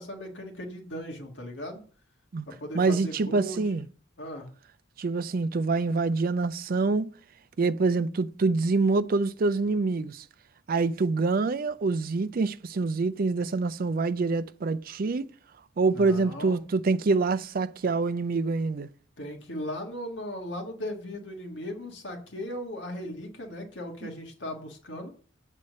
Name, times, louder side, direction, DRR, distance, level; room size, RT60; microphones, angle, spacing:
voice 1, 0.0-1.8 2.5-3.6 4.2-4.5 15.9-16.6 19.2-25.1, left 1 dB, 65° left, 1.8 m, -37 dB
voice 2, 2.7-3.9 5.0-7.1 7.6-10.2 10.7-15.3 15.8-18.9, right 3 dB, 50° right, 0.4 m, -26 dB
8.1 x 4.2 x 6.5 m
head